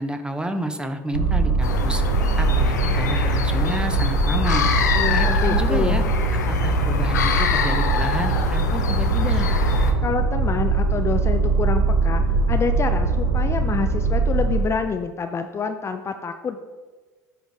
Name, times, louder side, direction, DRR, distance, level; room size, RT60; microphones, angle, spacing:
voice 1, 0.0-2.0 2.4-4.6 5.1-6.0 6.5-9.5, right 1 dB, 10° right, 7 dB, 0.8 m, -29 dB
sound 1, 1.1-14.6, right 3 dB, 85° right, 0.7 m, -22 dB
sound 2, 1.6-9.9, left 4 dB, 85° left, 0.6 m, -24 dB
voice 2, 4.9-6.1 10.0-12.2 12.5-16.6, left 5 dB, 30° left, 7 dB, 0.5 m, -27 dB
10.0 x 3.9 x 3.5 m, 1.3 s
hypercardioid pair, 70°, 9 cm